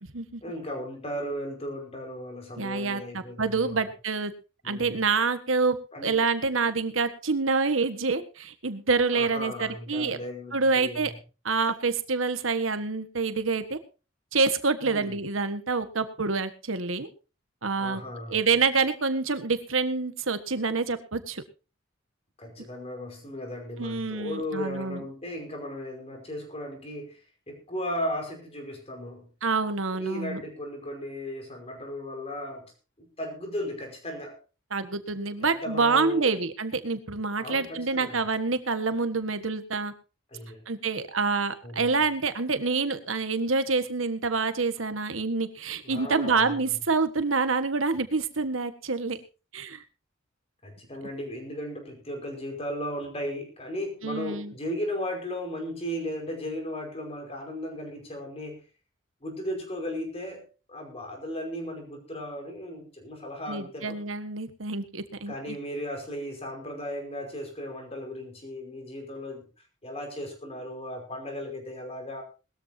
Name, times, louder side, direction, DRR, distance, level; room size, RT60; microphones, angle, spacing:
voice 1, 0.4-3.8 4.6-5.0 5.9-6.2 9.1-11.1 14.8-15.2 17.8-18.5 22.4-27.2 27.5-29.3 29.9-32.7 33.0-34.4 35.4-36.3 37.4-38.2 40.3-40.7 41.6-42.0 45.8-46.8 50.6-58.6 59.2-64.0 65.3-69.5 69.8-72.2, equal, 30° left, 4 dB, 5.1 m, -36 dB
voice 2, 2.5-4.3 4.6-5.8 6.0-10.2 10.5-11.1 11.4-13.8 14.3-17.1 17.6-18.0 18.3-21.4 23.8-25.0 29.4-30.4 34.7-39.9 40.7-49.2 49.5-49.8 54.0-54.5 63.5-65.6, right 4 dB, 80° right, 10 dB, 1.5 m, -27 dB
20.5 x 13.5 x 2.8 m, 0.32 s
head